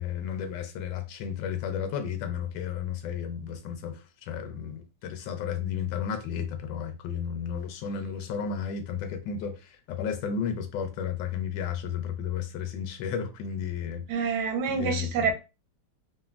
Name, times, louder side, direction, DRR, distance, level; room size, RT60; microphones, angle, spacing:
voice 1, 0.0-14.3 14.7-15.3, left 7 dB, 80° left, 1.2 m, -33 dB
voice 2, 14.1-15.3, right 5 dB, 70° right, 1.1 m, -27 dB
3.0 x 2.5 x 2.4 m
omnidirectional pair, 2.0 m